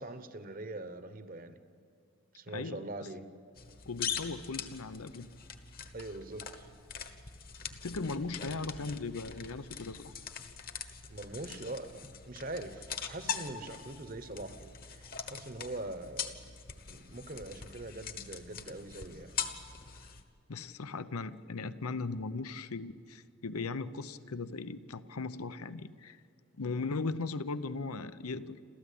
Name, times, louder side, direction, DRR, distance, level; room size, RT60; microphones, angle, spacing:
voice 1, 0.0-1.6 2.3-3.3 5.9-6.7 11.1-16.4 16.9-19.4, right 2 dB, 40° right, 10 dB, 1.0 m, -43 dB
voice 2, 2.5-2.9 3.9-5.3 7.7-10.1 20.5-26.2 26.5-28.6, left 3 dB, 90° left, 13 dB, 0.8 m, -38 dB
sound 1, 3.6-20.2, left 7 dB, 40° left, 1.2 m, -42 dB
28.0 x 14.5 x 8.5 m, 2.3 s
head